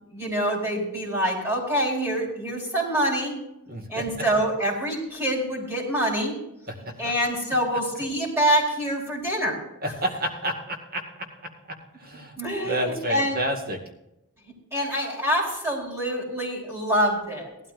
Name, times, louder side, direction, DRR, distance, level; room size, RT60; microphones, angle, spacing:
voice 1, 0.1-3.4 3.9-6.4 7.0-9.6 12.4-13.4 14.7-17.5, right 1 dB, 10° right, -2 dB, 4.7 m, -25 dB
voice 2, 3.7-4.0 6.7-7.1 9.8-11.0 12.0-12.4 12.6-13.8, equal, 45° right, 3 dB, 2.1 m, -29 dB
18.0 x 13.0 x 2.6 m, 0.86 s
head